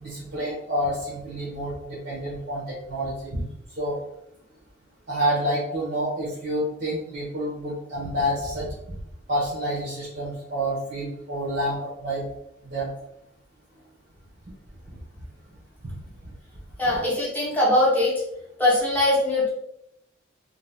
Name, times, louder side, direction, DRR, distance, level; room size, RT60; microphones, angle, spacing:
voice 1, 0.0-3.4 3.8-4.0 5.1-9.0 9.3-12.3 12.6-12.9, equal, 50° right, -7 dB, 0.8 m, -28 dB
voice 2, 16.8-18.1 18.6-19.5, left 1 dB, 10° left, -7 dB, 0.7 m, -21 dB
2.6 x 2.3 x 3.3 m, 0.81 s
head